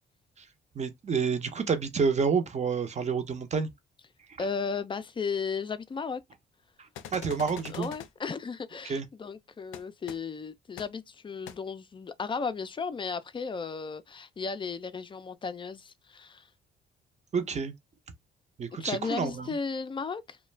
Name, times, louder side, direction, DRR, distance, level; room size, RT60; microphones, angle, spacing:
voice 1, 0.8-3.7 7.1-7.9 8.8-9.1 17.3-17.7 18.6-19.5, right 5 dB, 35° right, 0.6 m, -29 dB
voice 2, 4.4-6.2 7.7-16.5 18.8-20.4, left 5 dB, 25° left, 0.4 m, -35 dB
sound 1, 6.9-8.1 9.7-9.8 10.1-10.2 10.8-10.9 11.5-11.6, left 10 dB, 85° left, 0.4 m, -43 dB
2.4 x 2.2 x 3.1 m
cardioid pair, 90°, 20 cm